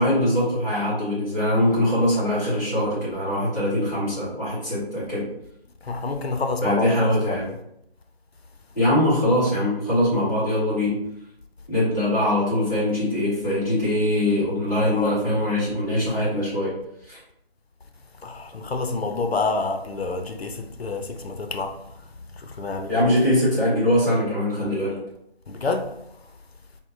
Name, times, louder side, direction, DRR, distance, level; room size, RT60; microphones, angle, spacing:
voice 1, 0.0-5.2 6.6-7.4 8.7-11.0 11.7-16.7 17.1-17.2 22.9-25.0, left 1 dB, 20° left, 1.2 m, -22 dB
voice 2, 5.8-6.9 7.2-7.6 14.8-15.2 18.2-23.1 25.5-26.2, left 3 dB, 75° left, 0.5 m, -29 dB
3.5 x 2.1 x 2.5 m
figure-of-eight pair, 175°, 32 cm